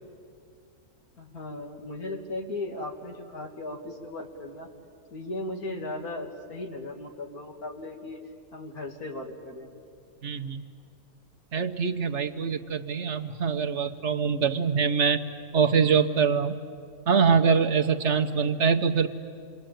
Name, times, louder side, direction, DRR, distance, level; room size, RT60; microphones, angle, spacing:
voice 1, 1.2-4.7 5.1-8.2 8.5-9.7, left 2 dB, 70° left, 2 dB, 2.8 m, -37 dB
voice 2, 10.2-10.7 11.5-15.2 15.5-16.5 17.1-19.1, right 6 dB, 55° right, 5 dB, 1.0 m, -24 dB
28.0 x 22.5 x 9.1 m, 2.4 s
omnidirectional pair, 1.6 m